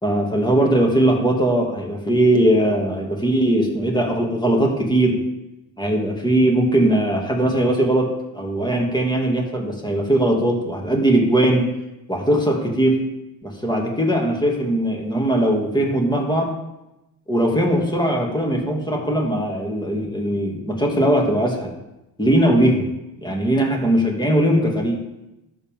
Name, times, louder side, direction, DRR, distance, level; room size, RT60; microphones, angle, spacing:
voice 1, 0.0-5.2 5.8-8.1 8.3-11.7 12.1-13.0 13.4-16.5 17.3-21.7 22.2-22.9 23.2-25.0, right 1 dB, 10° left, 0 dB, 2.6 m, -19 dB
11.0 x 7.7 x 3.8 m, 0.94 s
hypercardioid pair, 70°, 49 cm